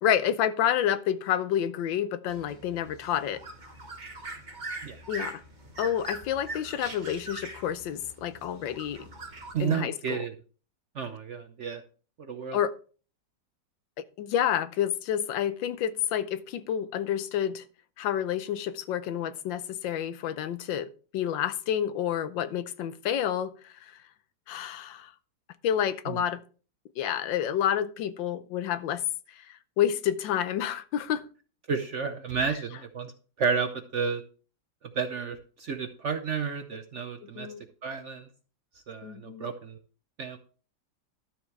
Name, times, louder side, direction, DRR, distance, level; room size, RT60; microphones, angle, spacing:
voice 1, 0.0-3.4 5.1-5.4 5.8-9.1 9.6-10.2 12.5-12.7 14.2-17.6 18.0-20.9 21.1-23.5 24.5-25.1 25.6-26.4 27.0-29.0 29.8-31.2 37.4-37.6 39.0-39.5, left 10 dB, 85° left, 1.4 m, -29 dB
sound 1, 2.3-9.5, right 2 dB, 25° right, 1.4 m, -42 dB
voice 2, 9.5-10.3 11.0-11.8 12.2-12.6 26.1-26.2 31.7-33.1 33.4-34.2 34.9-37.5 37.8-38.3 38.9-39.8 40.2-40.4, right 6 dB, 60° right, 0.8 m, -31 dB
12.0 x 7.2 x 3.2 m
omnidirectional pair, 2.0 m